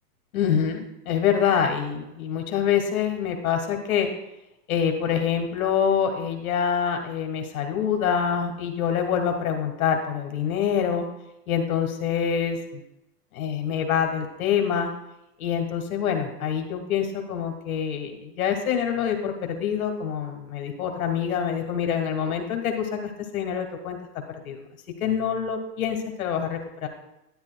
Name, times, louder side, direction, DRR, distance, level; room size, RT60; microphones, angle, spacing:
voice 1, 0.3-4.1 4.7-11.1 11.5-12.8 13.3-14.9 15.4-24.0 24.4-24.6 25.0-26.9, left 8 dB, 65° left, 4 dB, 1.6 m, -26 dB
10.5 x 10.0 x 2.3 m, 0.89 s
hypercardioid pair, 155°, 46 cm